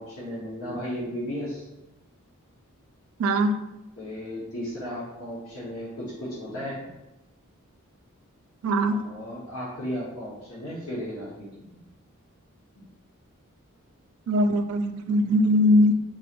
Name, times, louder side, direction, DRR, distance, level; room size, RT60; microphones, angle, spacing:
voice 1, 0.0-1.7 4.0-6.8 8.9-11.5, equal, 80° left, -8 dB, 1.2 m, -35 dB
voice 2, 3.2-3.6 8.6-9.0 14.3-15.9, equal, 80° right, 7 dB, 0.3 m, -21 dB
3.9 x 2.5 x 2.9 m, 0.96 s
head